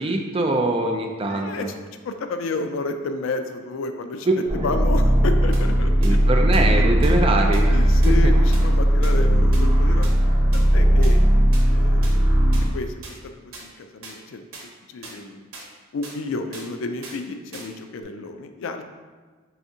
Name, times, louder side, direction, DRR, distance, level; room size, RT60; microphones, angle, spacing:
voice 1, 0.0-1.7 4.6-4.8 6.0-8.2, right 2 dB, 25° right, 3 dB, 0.3 m, -23 dB
voice 2, 1.3-1.7 2.0-4.3 4.6-6.2 6.7-6.8 7.7-10.1 10.5-11.2 11.6-12.4 12.7-13.3 13.6-14.4 14.9-15.4 15.9-18.9, left 3 dB, 70° left, 7 dB, 0.3 m, -31 dB
sound 1, 4.5-12.7, equal, 40° right, 1.4 m, -17 dB
sound 2, 5.5-5.6 6.0-6.1 6.5-6.6 7.0-7.1 7.5-7.6 8.0-8.1 8.5-8.6 9.0-9.1 9.5-9.6 10.0-10.1 10.5-10.6 11.0-11.1 11.5-11.6 12.0-12.1 12.5-12.6 13.0-13.1 13.5-13.6 14.0-14.2 14.5-14.7 15.0-15.2 15.5-15.7 16.0-16.2 16.5-16.7 17.0-17.2 17.5-17.7 18.0-18.1, right 3 dB, 80° right, 0.9 m, -40 dB
4.8 x 3.4 x 2.7 m, 1.4 s
head